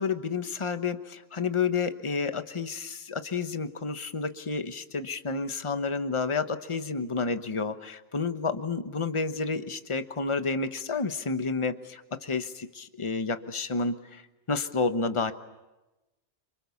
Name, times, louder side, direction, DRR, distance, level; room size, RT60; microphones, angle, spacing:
voice 1, 0.0-14.2 14.5-15.3, left 4 dB, 30° left, 9 dB, 1.1 m, -30 dB
28.0 x 26.5 x 7.1 m, 1.0 s
omnidirectional pair, 1.2 m